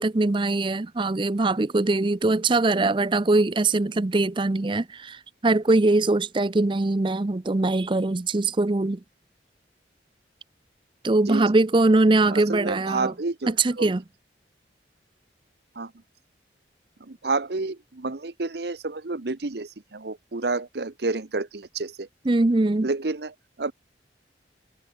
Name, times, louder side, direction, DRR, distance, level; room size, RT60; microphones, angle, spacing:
voice 1, 0.0-9.0 11.0-13.1 13.5-14.0 22.3-22.9, right 2 dB, 25° right, 0.5 m, -22 dB
voice 2, 12.3-13.9 15.7-15.9 17.0-22.1 22.8-23.7, right 3 dB, 60° right, 0.9 m, -30 dB
head